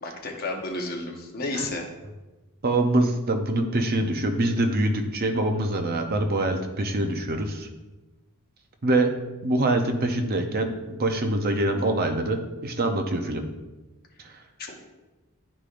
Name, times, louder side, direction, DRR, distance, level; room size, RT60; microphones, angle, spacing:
voice 1, 0.0-1.9 14.6-14.8, left 2 dB, 45° left, 1 dB, 1.0 m, -32 dB
voice 2, 2.6-7.7 8.8-9.1 9.4-13.5 14.2-14.4, right 1 dB, 45° right, 5 dB, 0.6 m, -24 dB
11.0 x 4.9 x 2.5 m, 1.1 s
head